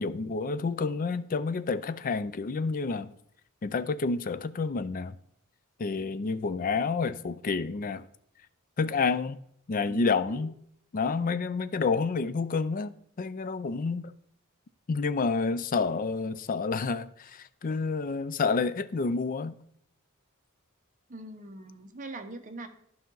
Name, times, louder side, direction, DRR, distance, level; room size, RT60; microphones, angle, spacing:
voice 1, 0.0-3.1 3.6-5.2 5.8-8.0 8.8-9.4 9.7-10.5 10.9-12.9 13.2-14.1 14.9-19.5, left 4 dB, 40° left, 0.4 m, -29 dB
voice 2, 9.9-10.5 21.1-22.7, right 2 dB, 40° right, 0.9 m, -42 dB
12.0 x 5.6 x 3.9 m
head